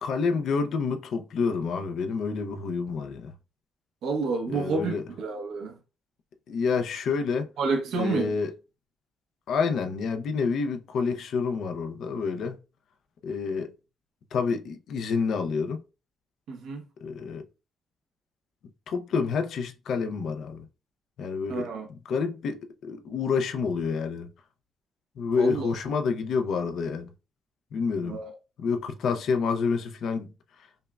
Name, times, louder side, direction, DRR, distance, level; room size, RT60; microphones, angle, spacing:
voice 1, 0.0-3.3 4.5-5.0 6.5-7.5 7.9-8.5 9.5-12.6 13.2-13.7 14.3-15.8 17.0-17.4 18.9-20.6 21.2-21.7 22.1-24.3 25.2-27.1 27.7-28.2 28.6-30.3, left 5 dB, 70° left, 0.6 m, -28 dB
voice 2, 4.0-5.8 7.6-8.4 16.5-16.8 21.5-21.9 25.4-25.7 28.0-28.3, right 4 dB, 85° right, 1.0 m, -29 dB
5.3 x 2.4 x 2.2 m
cardioid pair, 135°, 0 cm